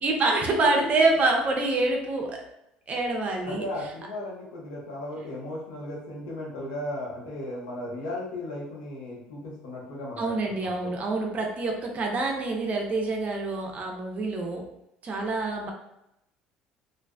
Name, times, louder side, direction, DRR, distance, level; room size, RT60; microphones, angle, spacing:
voice 1, 0.0-2.4 2.9-3.6 10.2-14.6 15.0-15.7, right 2 dB, 40° right, 1 dB, 0.5 m, -26 dB
voice 2, 3.4-10.9, left 1 dB, 80° left, -4 dB, 0.9 m, -36 dB
2.5 x 2.3 x 2.2 m, 0.83 s
hypercardioid pair, 75°, 4 cm